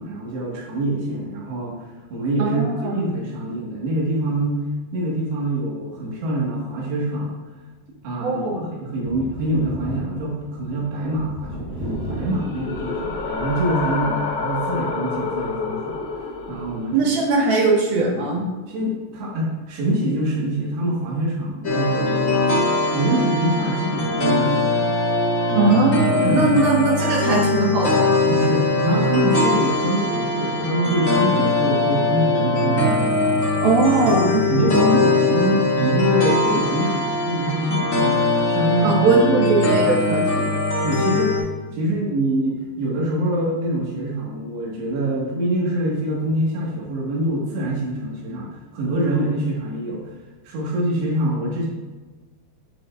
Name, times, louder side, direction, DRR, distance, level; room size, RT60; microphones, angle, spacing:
voice 1, 0.0-2.6 2.9-7.3 8.0-11.7 12.1-16.0 16.5-17.1 18.7-22.4 22.9-24.7 26.1-26.6 28.3-33.6 34.0-39.1 39.8-39.9 40.3-40.5 40.8-41.3 41.7-50.0 50.5-51.7, right 1 dB, 85° right, -4 dB, 3.9 m, -25 dB
voice 2, 2.4-3.0 8.2-8.7 16.9-18.5 25.6-26.0 26.3-28.2 33.6-34.4 38.8-40.4, right 3 dB, 70° right, -3 dB, 3.2 m, -19 dB
Thunder, 9.0-14.1 14.5-14.6 15.9-16.0, equal, 25° right, 2.2 m, -34 dB
sound 1, 11.8-16.9, left 4 dB, 50° left, 2.1 m, -28 dB
sound 2, 21.6-41.4, left 2 dB, 75° left, 0.7 m, -21 dB
9.2 x 8.6 x 2.5 m, 1.3 s
omnidirectional pair, 4.7 m